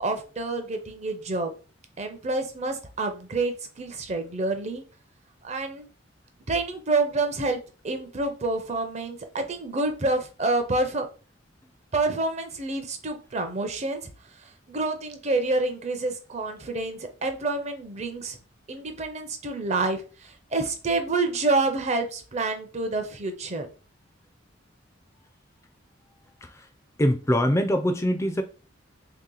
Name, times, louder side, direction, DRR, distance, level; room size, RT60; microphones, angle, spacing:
voice 1, 0.0-1.5 2.0-4.8 5.4-5.9 6.5-11.1 11.9-14.0 14.7-18.4 18.7-20.0 20.5-23.7, right 3 dB, 35° right, 0.6 m, -28 dB
voice 2, 27.0-28.4, equal, 15° left, 0.4 m, -23 dB
3.2 x 2.9 x 3.8 m
head